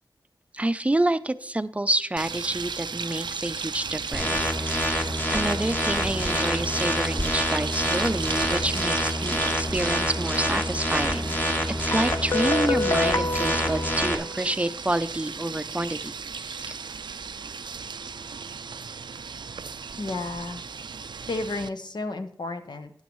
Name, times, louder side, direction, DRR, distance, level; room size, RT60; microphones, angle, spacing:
voice 1, 0.5-11.4 11.7-16.1 16.4-16.7, right 1 dB, 15° right, 12 dB, 0.5 m, -28 dB
sound 1, 2.2-21.7, right 5 dB, 75° right, 0.4 m, -35 dB
sound 2, 4.1-14.1, equal, 25° left, 1.6 m, -27 dB
Guitar, 11.9-14.7, left 2 dB, 40° left, 0.5 m, -28 dB
voice 2, 20.0-20.6 21.3-22.9, left 2 dB, 70° left, 7 dB, 1.0 m, -32 dB
12.0 x 9.7 x 3.1 m, 0.62 s
wide cardioid pair, 55°, 8 cm